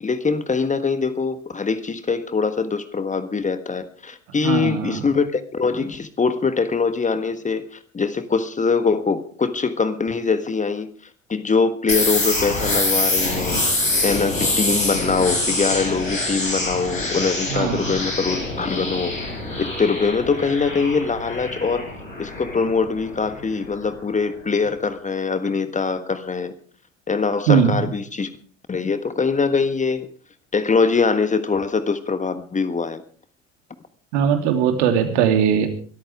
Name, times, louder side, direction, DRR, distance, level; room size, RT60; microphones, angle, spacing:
voice 1, 0.0-10.9 11.3-13.6 14.0-19.1 19.6-21.9 22.2-26.5 27.1-28.3 28.7-30.1 30.5-33.0, left 4 dB, 20° left, 11 dB, 1.4 m, -23 dB
voice 2, 4.4-5.0 17.5-17.8 27.5-27.8 34.1-35.7, right 8 dB, 65° right, 5 dB, 3.0 m, -19 dB
sound 1, 11.9-23.5, left 2 dB, 90° left, 5.7 m, -25 dB
23.5 x 13.5 x 3.6 m, 0.43 s
figure-of-eight pair, 65°, 38 cm